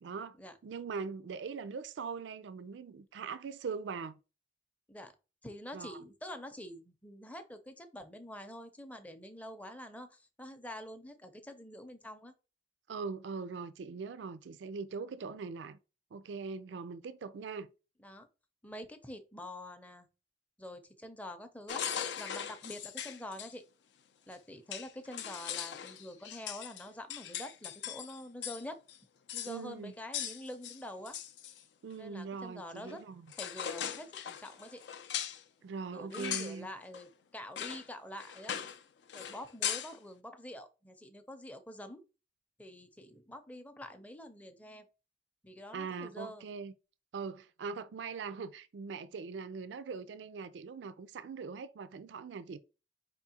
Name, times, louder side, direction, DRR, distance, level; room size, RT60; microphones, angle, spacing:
voice 1, 0.0-4.2 5.7-6.0 12.9-15.8 16.1-17.7 29.5-29.9 31.8-33.3 35.6-36.7 45.7-46.7 47.1-52.6, right 5 dB, 85° right, 0.4 m, -41 dB
voice 2, 5.4-12.3 18.0-18.3 18.6-20.1 20.6-21.8 22.2-23.6 24.3-28.8 29.3-31.2 32.0-33.0 33.3-34.8 35.9-38.5 39.1-42.0 42.6-44.9 45.4-46.5, left 1 dB, 10° left, 0.5 m, -46 dB
sound 1, 21.7-23.5 24.3-24.4 24.7-28.6 28.9-29.0 29.3-29.6 30.1-31.6 32.9-33.0 33.3-35.4 36.1-36.6 36.9-37.1 37.6-37.9 38.2-38.8 39.1-39.9, left 9 dB, 75° left, 0.4 m, -39 dB
4.4 x 3.5 x 2.8 m
head